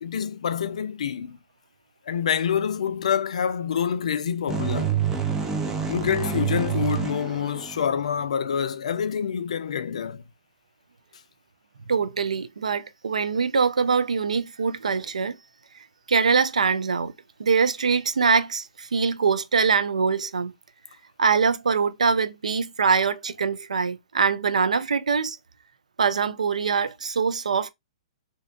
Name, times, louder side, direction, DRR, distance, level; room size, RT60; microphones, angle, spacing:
voice 1, 0.0-1.4 2.1-4.9 5.9-10.2, left 8 dB, 75° left, 0.3 m, -26 dB
sound 1, 4.5-8.2, right 7 dB, 15° right, 0.4 m, -27 dB
voice 2, 11.9-15.4 16.1-17.1 17.4-20.5 21.2-25.4 26.0-27.7, right 5 dB, 90° right, 0.3 m, -23 dB
2.7 x 2.1 x 2.4 m
hypercardioid pair, 130°, 4 cm